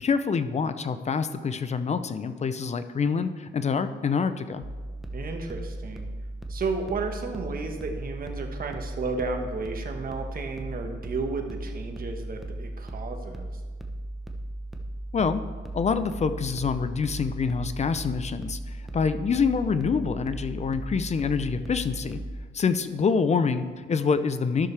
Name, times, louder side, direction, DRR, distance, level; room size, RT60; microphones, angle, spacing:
voice 1, 0.0-4.6 15.1-15.4 15.7-22.2 22.5-24.7, left 5 dB, 35° left, 11 dB, 0.5 m, -26 dB
sound 1, 4.6-22.5, right 1 dB, ahead, 0.9 m, -37 dB
voice 2, 5.1-6.1 6.5-13.6, right 4 dB, 45° right, 4 dB, 1.3 m, -33 dB
13.0 x 6.4 x 3.4 m, 1.4 s
cardioid pair, 90°, 20 cm